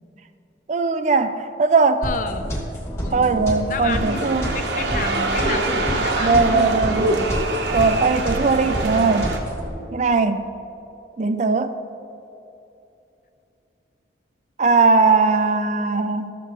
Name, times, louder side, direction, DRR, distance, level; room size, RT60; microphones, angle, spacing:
voice 1, 0.7-2.1 3.1-4.5 6.2-7.1 7.7-9.4 9.9-10.4 11.2-11.7 14.6-16.3, right 4 dB, 40° right, 10 dB, 0.4 m, -19 dB
voice 2, 2.0-2.5 3.7-6.7, left 4 dB, 45° left, 9 dB, 0.5 m, -30 dB
sound 1, 2.0-9.7, equal, 15° left, 1.5 m, -29 dB
sound 2, 3.9-9.4, right 2 dB, 80° right, 0.9 m, -25 dB
13.0 x 6.8 x 3.4 m, 2.8 s
head